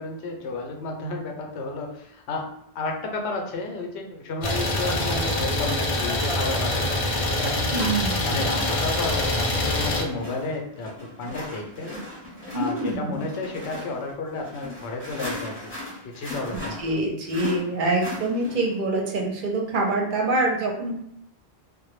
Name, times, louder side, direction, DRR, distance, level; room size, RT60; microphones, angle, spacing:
voice 1, 0.0-2.5 2.7-7.7 8.3-12.0 12.5-15.7 16.0-16.8, left 2 dB, 85° left, 2 dB, 0.9 m, -32 dB
Idling, 4.4-10.0, left 1 dB, 65° left, 0.3 m, -25 dB
sound 1, 7.7-18.8, left 2 dB, 15° left, 0.6 m, -38 dB
voice 2, 7.7-8.5 12.5-13.2 16.5-21.0, right 2 dB, 60° right, 0 dB, 0.6 m, -25 dB
2.1 x 2.0 x 3.0 m, 0.75 s
omnidirectional pair, 1.1 m